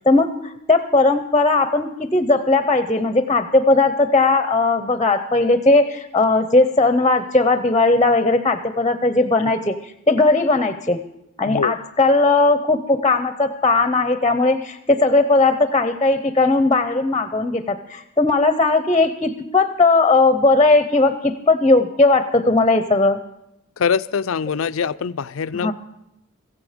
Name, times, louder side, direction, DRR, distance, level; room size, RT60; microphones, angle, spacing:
voice 1, 0.1-0.4 0.7-9.8 10.1-11.0 11.4-23.2 25.5-25.7, left 3 dB, 20° left, 10 dB, 0.7 m, -17 dB
voice 2, 23.8-25.7, left 6 dB, 85° left, 16 dB, 0.5 m, -23 dB
15.5 x 15.5 x 5.1 m, 0.84 s
head